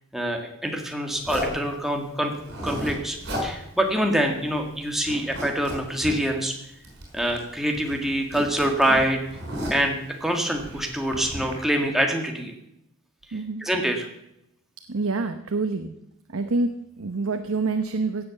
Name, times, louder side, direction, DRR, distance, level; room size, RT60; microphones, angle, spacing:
voice 1, 0.1-2.4 2.6-6.5 7.1-9.2 9.7-12.5 13.6-14.1, right 1 dB, ahead, 2 dB, 1.8 m, -25 dB
Zipper (clothing), 1.2-1.6 2.4-3.5 3.9-4.0 4.3-4.7 5.0-6.2 6.8-7.5 7.7-9.9 10.5-11.5, equal, 50° right, 5.5 m, -33 dB
voice 2, 13.3-13.6 14.9-15.9 16.3-18.2, right 3 dB, 70° right, 7 dB, 0.9 m, -27 dB
16.5 x 7.9 x 7.0 m, 0.80 s
head